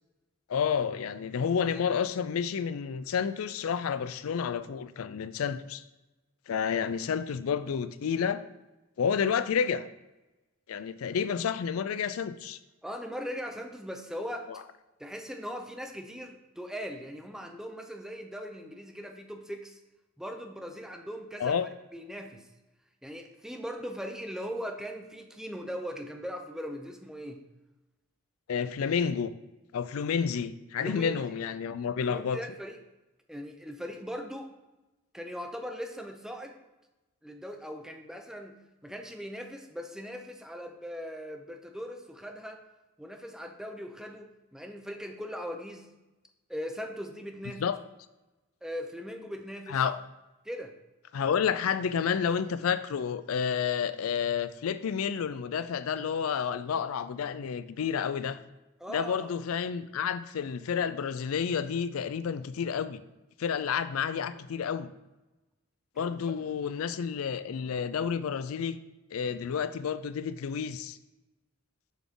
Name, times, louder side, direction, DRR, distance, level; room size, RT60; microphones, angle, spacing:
voice 1, 0.5-5.8 6.5-8.4 9.0-9.8 10.7-12.6 14.5-14.6 21.4-21.7 28.5-29.3 29.7-32.4 47.6-47.7 49.7-50.0 51.1-58.4 58.9-63.0 63.4-64.9 66.0-68.8 69.1-71.0, left 7 dB, 85° left, 13 dB, 0.4 m, -30 dB
voice 2, 12.8-14.5 15.0-19.8 20.2-21.6 21.9-22.4 23.0-27.4 30.8-31.1 32.0-32.8 33.3-34.5 35.1-36.6 37.2-38.5 38.8-42.6 43.0-45.9 46.5-47.6 48.6-49.8 50.4-50.8 58.8-59.3 66.0-66.4, equal, 5° right, 4 dB, 0.6 m, -39 dB
7.2 x 6.1 x 3.7 m, 1.0 s
head